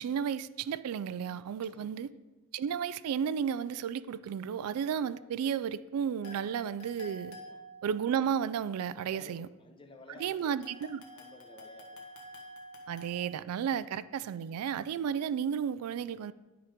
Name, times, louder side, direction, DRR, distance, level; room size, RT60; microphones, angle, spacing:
voice 1, 0.0-2.1 2.5-7.4 7.8-9.5 10.2-11.0 12.9-16.3, right 8 dB, 80° right, 0.3 m, -33 dB
voice 2, 1.6-2.0 7.3-7.6 9.1-10.6 11.1-12.1 13.8-13.9, left 2 dB, 20° left, 0.6 m, -54 dB
sound 1, 6.2-8.3 10.4-13.2, left 1 dB, 65° left, 1.3 m, -49 dB
11.0 x 5.0 x 3.6 m
head